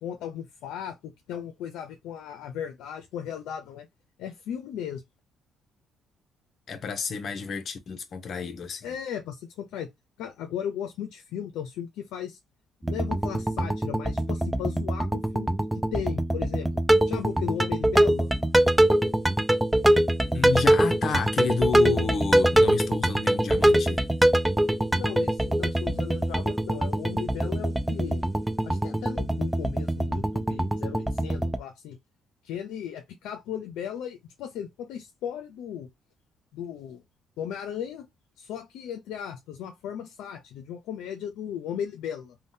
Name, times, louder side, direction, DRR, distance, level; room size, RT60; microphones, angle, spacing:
voice 1, 0.0-3.9 4.2-5.0 8.8-9.9 10.2-12.4 12.9-16.7 17.1-18.3 24.9-28.2 28.6-32.0 32.4-35.9 36.5-37.0 37.4-38.1 38.4-42.3, left 9 dB, 90° left, 0.5 m, -36 dB
voice 2, 6.7-8.9 20.2-24.1, left 5 dB, 45° left, 0.7 m, -31 dB
sound 1, 12.8-31.6, right 1 dB, 5° right, 0.3 m, -24 dB
3.6 x 2.2 x 2.6 m
cardioid pair, 115°, 0 cm